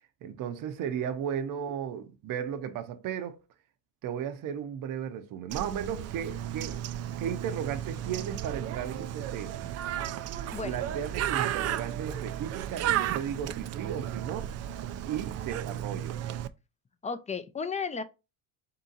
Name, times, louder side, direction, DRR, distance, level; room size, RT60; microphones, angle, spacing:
voice 1, 0.2-3.4 4.0-6.8 7.2-9.6 10.6-14.5 15.1-16.1, right 8 dB, 60° right, 0.8 m, -35 dB
Bird, 5.5-16.5, right 11 dB, 45° right, 0.4 m, -34 dB
voice 2, 17.0-18.0, left 5 dB, 20° left, 0.5 m, -33 dB
3.7 x 2.9 x 3.8 m
supercardioid pair, 100°, 36 cm